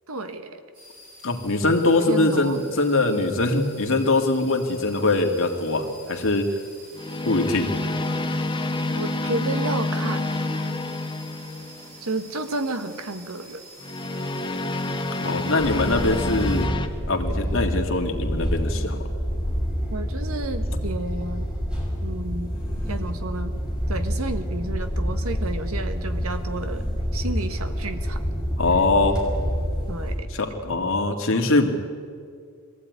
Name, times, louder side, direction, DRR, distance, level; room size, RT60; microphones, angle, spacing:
voice 1, 0.1-0.6 2.1-2.6 8.9-10.2 12.0-13.6 19.9-21.5 22.0-22.6 22.9-23.6 23.9-26.8 27.1-28.2 29.9-30.3, right 2 dB, 75° right, 8 dB, 1.6 m, -31 dB
sound 1, 0.7-16.6, equal, 40° right, 7.5 m, -47 dB
voice 2, 1.2-6.5 7.3-7.7 15.2-16.7 17.1-19.0 28.6-29.2 30.3-31.7, left 2 dB, 65° left, 3 dB, 2.5 m, -22 dB
sound 2, 5.0-5.3 6.9-12.0 13.8-16.9, left 2 dB, 20° left, 1.2 m, -28 dB
sound 3, 15.6-30.1, equal, 5° right, 5.9 m, -27 dB
23.0 x 15.0 x 9.6 m, 2.1 s
head